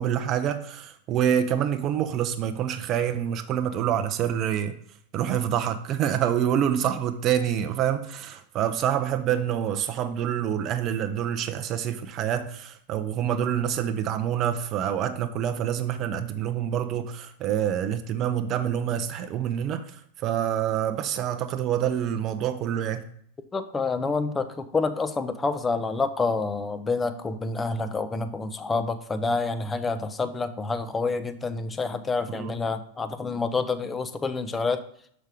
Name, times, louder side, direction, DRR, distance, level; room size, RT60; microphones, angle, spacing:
voice 1, 0.0-4.7 5.1-23.1 32.3-32.6, right 9 dB, 35° right, 0.5 m, -27 dB
voice 2, 23.5-34.9, left 4 dB, 15° left, 0.5 m, -28 dB
6.4 x 5.0 x 4.8 m
figure-of-eight pair, 90°, 0 cm